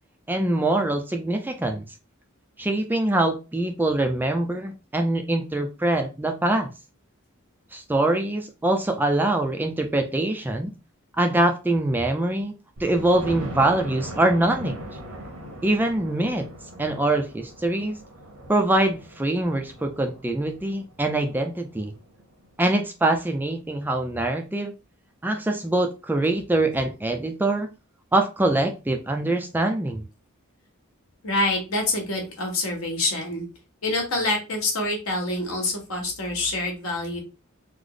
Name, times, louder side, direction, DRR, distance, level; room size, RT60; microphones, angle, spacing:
voice 1, 0.3-1.8 2.6-6.7 7.7-10.7 11.2-12.5 12.8-14.8 15.6-16.5 16.8-18.0 18.5-21.9 22.6-24.7 25.2-27.7 28.1-30.0, right 2 dB, 10° right, 4 dB, 0.3 m, -24 dB
Thunder, 12.8-22.5 23.0-23.1 23.6-23.7 23.9-24.0, right 1 dB, 80° right, 0.8 m, -40 dB
voice 2, 31.2-33.4 33.8-37.2, left 2 dB, 75° left, 1 dB, 1.2 m, -26 dB
3.2 x 2.0 x 3.8 m, 0.30 s
head